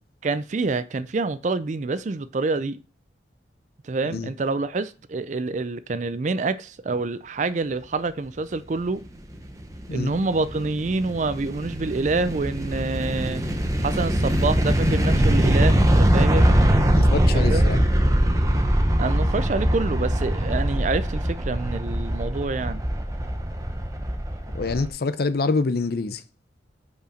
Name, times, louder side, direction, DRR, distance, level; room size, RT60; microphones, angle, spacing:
voice 1, 0.2-2.8 3.8-9.1 9.9-13.4 13.8-16.5 17.3-17.7 19.0-22.8, right 3 dB, 40° right, 0.4 m, -27 dB
sound 1, 9.4-24.9, equal, 20° right, 0.7 m, -22 dB
voice 2, 17.0-17.8 24.5-26.2, left 3 dB, 55° left, 0.5 m, -26 dB
5.3 x 4.9 x 5.0 m
head